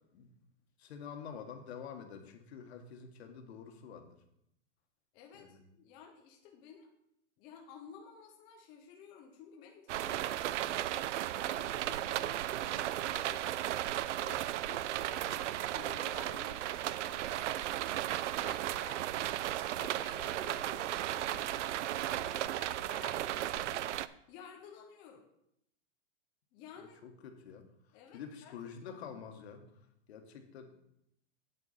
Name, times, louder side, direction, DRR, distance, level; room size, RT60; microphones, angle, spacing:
voice 1, 0.8-4.1 5.3-5.6 19.3-19.4 27.0-29.6 30.1-30.8, left 7 dB, 65° left, 6 dB, 1.5 m, -48 dB
voice 2, 5.1-6.9 7.4-10.9 11.4-13.8 14.2-17.9 18.4-19.4 19.7-25.2 26.5-27.0 27.9-28.5 28.9-29.0, left 7 dB, 15° left, 1 dB, 0.4 m, -53 dB
sound 1, 9.9-24.1, right 13 dB, 90° right, 0.5 m, -35 dB
8.4 x 8.1 x 4.2 m, 0.78 s
supercardioid pair, 165°, 35 cm